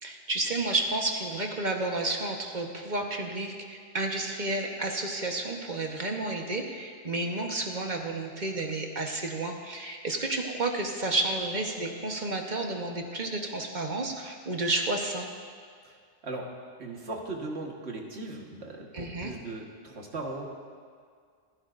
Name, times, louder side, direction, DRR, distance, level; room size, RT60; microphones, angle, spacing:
voice 1, 0.0-15.3 18.9-19.3, right 2 dB, 45° right, 2 dB, 1.3 m, -31 dB
voice 2, 15.8-16.5 16.8-20.5, right 2 dB, 75° right, 0 dB, 1.8 m, -38 dB
26.0 x 11.5 x 2.6 m, 2.1 s
omnidirectional pair, 1.1 m